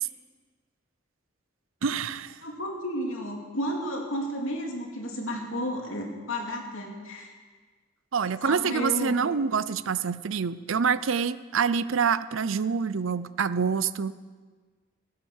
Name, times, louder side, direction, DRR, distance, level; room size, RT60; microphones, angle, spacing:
voice 1, 1.8-2.3 8.1-14.1, right 6 dB, 75° right, 16 dB, 0.5 m, -26 dB
voice 2, 2.4-7.3 8.4-9.2, equal, 80° left, 1 dB, 2.6 m, -32 dB
16.0 x 9.5 x 7.3 m, 1.5 s
head